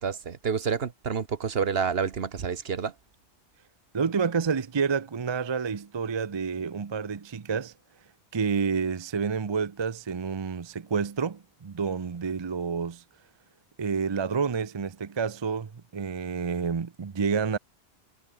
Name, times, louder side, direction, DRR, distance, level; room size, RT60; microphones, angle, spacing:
voice 1, 0.0-2.9, right 6 dB, 65° right, 1.3 m, -29 dB
voice 2, 3.9-7.7 8.3-13.0 13.8-17.6, right 5 dB, 30° right, 0.5 m, -29 dB
omnidirectional pair, 1.1 m